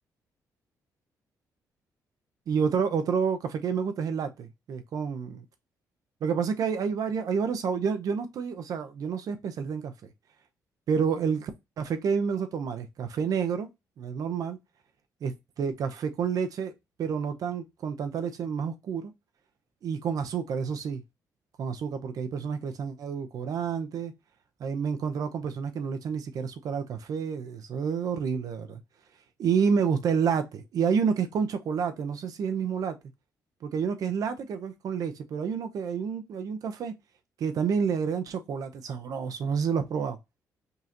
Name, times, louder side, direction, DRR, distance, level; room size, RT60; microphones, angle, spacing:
voice 1, 2.5-5.4 6.2-9.9 10.9-11.5 11.8-13.7 14.0-14.6 15.2-16.7 17.0-19.1 19.8-21.0 21.6-24.1 24.6-28.8 29.4-33.0 33.6-36.9 37.4-40.2, right 6 dB, 65° right, 0.7 m, -29 dB
5.4 x 2.8 x 2.5 m
cardioid pair, 100°, 7 cm